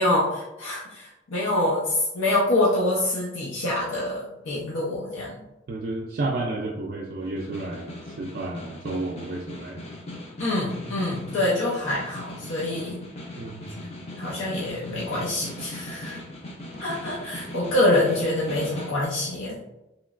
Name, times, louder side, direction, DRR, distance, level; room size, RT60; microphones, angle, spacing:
voice 1, 0.0-5.4 10.4-13.0 14.1-16.2 16.8-19.6, left 1 dB, 85° left, -5 dB, 0.6 m, -25 dB
voice 2, 5.7-9.8 13.4-13.7, right 2 dB, 50° right, -2 dB, 0.3 m, -31 dB
Snare drum, 7.2-19.0, left 1 dB, 30° left, 0.4 m, -39 dB
3.0 x 3.0 x 2.4 m, 0.98 s
head